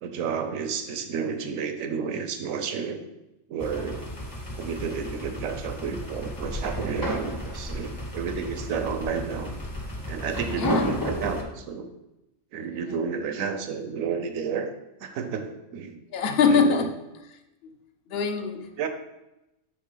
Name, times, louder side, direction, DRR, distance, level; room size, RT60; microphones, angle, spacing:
voice 1, 0.0-3.0 3.5-4.0 4.6-9.5 10.1-11.9 12.5-14.7 15.0-16.0 16.4-16.9 18.8-18.9, right 6 dB, 85° right, 7 dB, 1.1 m, -31 dB
sound 1, 3.6-11.4, equal, 20° left, 0.7 m, -33 dB
voice 2, 10.6-10.9 16.1-16.9 18.1-18.7, left 5 dB, 55° left, 5 dB, 0.9 m, -23 dB
9.4 x 3.4 x 3.9 m, 0.94 s
omnidirectional pair, 1.4 m